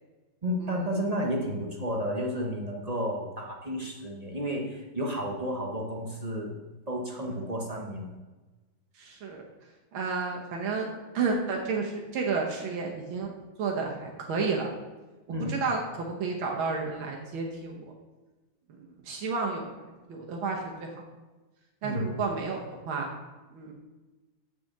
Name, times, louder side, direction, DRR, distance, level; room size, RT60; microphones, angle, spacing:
voice 1, 0.4-6.5 6.9-8.2 15.3-15.6 21.8-22.0, equal, 35° right, 0 dB, 0.6 m, -32 dB
voice 2, 9.0-9.4 9.9-13.3 13.6-14.7 15.5-17.9 18.7-19.7 20.1-20.9 21.8-23.1 23.5-23.7, right 4 dB, 85° right, 0 dB, 1.9 m, -31 dB
6.5 x 5.9 x 7.3 m, 1.2 s
omnidirectional pair, 2.2 m